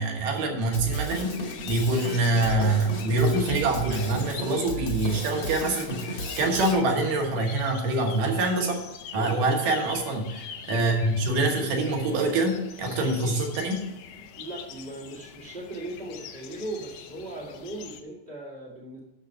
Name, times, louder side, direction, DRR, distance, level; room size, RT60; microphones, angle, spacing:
voice 1, 0.0-8.9 9.1-13.9, right 2 dB, 65° right, 2 dB, 2.4 m, -25 dB
Drum kit, 0.7-6.7, right 1 dB, 45° left, 1.6 m, -34 dB
sound 1, 1.3-18.0, left 8 dB, 75° left, 2.6 m, -44 dB
voice 2, 9.1-9.5 14.4-19.0, right 2 dB, 35° right, -2 dB, 0.9 m, -38 dB
9.1 x 6.9 x 5.6 m, 0.98 s
omnidirectional pair, 4.9 m